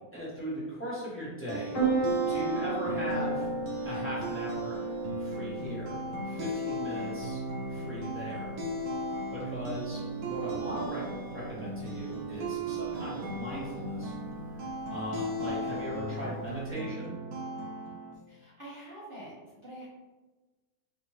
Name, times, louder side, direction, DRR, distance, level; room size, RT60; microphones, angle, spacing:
voice 1, 0.1-1.8 2.3-3.5 3.8-4.9 5.2-7.4 7.7-8.5 9.3-14.1 14.5-14.6 14.9-17.1, equal, 10° left, -9 dB, 1.4 m, -38 dB
sound 1, 1.2-18.1, right 2 dB, 85° right, 1.3 m, -36 dB
Piano, 1.7-16.7, right 3 dB, 55° left, 1.5 m, -37 dB
voice 2, 18.3-19.9, right 1 dB, 40° right, -9 dB, 1.1 m, -46 dB
5.1 x 2.7 x 3.1 m, 1.2 s
omnidirectional pair, 1.6 m